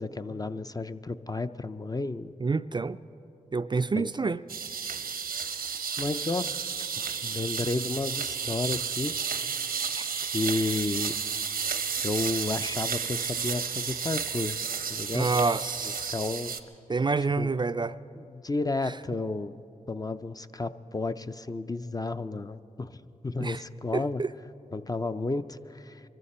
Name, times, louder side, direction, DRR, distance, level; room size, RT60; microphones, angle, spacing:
voice 1, 0.0-2.3 4.0-4.1 5.3-6.6 7.2-9.1 10.3-11.1 12.0-14.6 14.9-15.3 16.1-16.5 17.4-17.5 18.2-19.5 19.9-24.2 24.7-26.0, left 3 dB, 25° left, 0.5 m, -32 dB
voice 2, 2.4-3.0 3.5-4.4 15.1-16.1 16.9-18.0 23.4-23.6 23.9-24.3, right 4 dB, 30° right, 0.4 m, -27 dB
sound 1, 4.5-16.6, right 6 dB, 90° right, 0.8 m, -32 dB
24.0 x 14.0 x 4.3 m
cardioid pair, 50°, 15 cm